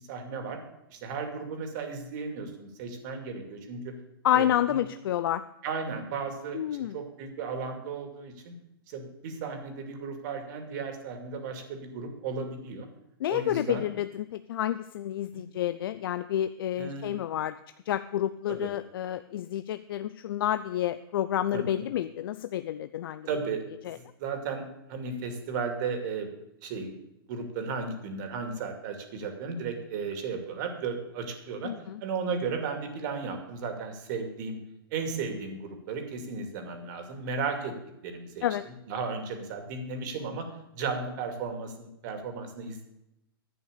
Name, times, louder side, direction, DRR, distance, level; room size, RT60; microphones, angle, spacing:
voice 1, 0.1-0.6 0.9-3.9 4.3-4.8 5.6-8.6 8.9-12.9 13.3-13.9 15.3-15.4 16.8-17.2 18.5-18.7 21.5-21.9 23.3-23.6 23.9-26.3 26.6-26.9 27.3-31.7 32.0-34.6 34.9-37.8 38.0-40.5 40.7-42.8, right 5 dB, 50° right, 5 dB, 2.5 m, -35 dB
voice 2, 4.2-5.4 6.5-7.0 13.2-17.6 17.9-23.3 23.8-24.0 31.6-32.0 38.4-38.6, left 11 dB, 65° left, 12 dB, 0.5 m, -29 dB
11.0 x 8.7 x 6.7 m, 0.88 s
hypercardioid pair, 130°, 13 cm